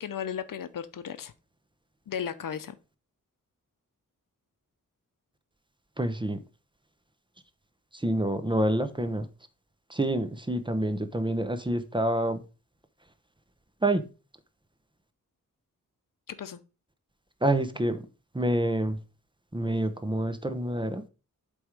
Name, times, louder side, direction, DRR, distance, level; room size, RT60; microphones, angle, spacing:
voice 1, 0.0-1.3 2.1-2.7 16.3-16.6, left 8 dB, 70° left, 0.7 m, -35 dB
voice 2, 6.0-6.4 7.9-9.3 9.9-12.4 13.8-14.1 17.4-18.1 18.3-19.0 19.5-21.0, right 1 dB, 15° right, 0.9 m, -27 dB
7.9 x 3.6 x 4.8 m
cardioid pair, 70°, 33 cm